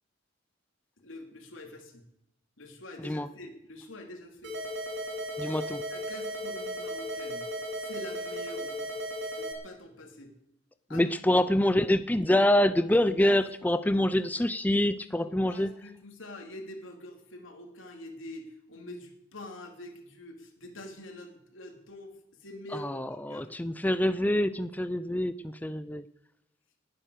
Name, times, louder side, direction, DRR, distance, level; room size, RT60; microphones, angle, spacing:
voice 1, 1.0-2.0 2.6-4.6 5.9-7.4 7.8-8.8 9.3-10.3 10.9-11.1 12.9-13.4 13.8-14.0 15.2-22.9 23.3-23.5, left 1 dB, 85° left, 3 dB, 3.3 m, -45 dB
sound 1, 4.4-9.5, equal, 65° right, 4.5 m, -36 dB
voice 2, 5.4-5.8 10.9-15.7 22.8-22.9 23.3-26.0, left 1 dB, 10° left, 12 dB, 0.5 m, -26 dB
19.5 x 10.0 x 6.7 m, 0.81 s
head